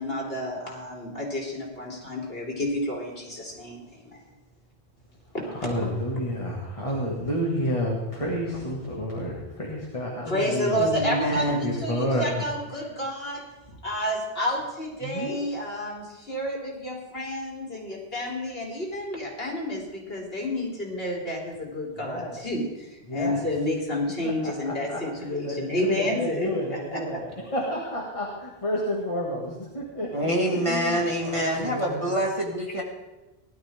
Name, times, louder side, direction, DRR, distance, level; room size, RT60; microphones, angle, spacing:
voice 1, 0.0-4.2 5.3-5.7 10.3-11.5 11.8-13.5 13.8-27.4 30.9-31.3, left 1 dB, 65° left, -2 dB, 3.7 m, -30 dB
voice 2, 5.5-10.9 11.6-12.4 15.0-15.4 22.0-22.3 23.1-23.4 24.2-25.0 25.4-27.2 27.5-32.1, equal, 30° left, -3 dB, 2.1 m, -30 dB
voice 3, 10.8-11.8 30.1-32.8, equal, 30° right, -1 dB, 2.3 m, -26 dB
19.0 x 12.0 x 3.6 m, 1.0 s
omnidirectional pair, 1.1 m